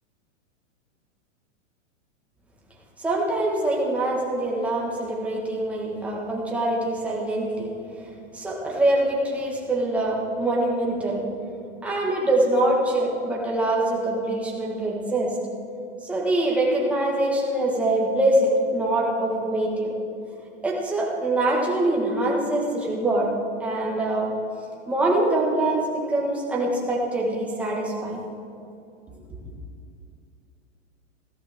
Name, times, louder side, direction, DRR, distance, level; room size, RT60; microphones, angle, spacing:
voice 1, 3.0-7.7 8.3-11.3 11.8-15.4 16.0-19.9 20.6-23.3 23.6-24.3 24.9-28.2, right 1 dB, 5° right, -3 dB, 1.4 m, -24 dB
14.5 x 13.0 x 3.5 m, 2.5 s
supercardioid pair, 160°, 38 cm